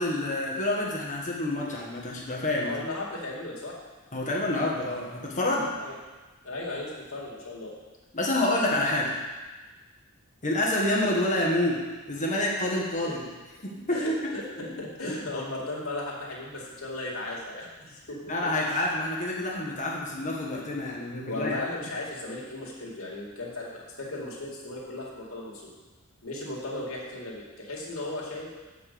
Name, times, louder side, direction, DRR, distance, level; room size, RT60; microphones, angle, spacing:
voice 1, 0.0-2.7 4.1-5.7 8.1-9.1 10.4-13.2 13.6-14.2 14.6-14.7 15.0-15.1 18.3-21.6, left 1 dB, 35° left, -3 dB, 1.6 m, -28 dB
voice 2, 2.6-3.7 5.7-5.9 6.4-7.7 13.0-13.1 13.9-18.3 18.7-18.8 21.3-23.7 24.0-25.7 26.2-28.5, left 2 dB, 80° left, -4 dB, 2.3 m, -36 dB
7.2 x 5.5 x 6.9 m, 1.2 s
head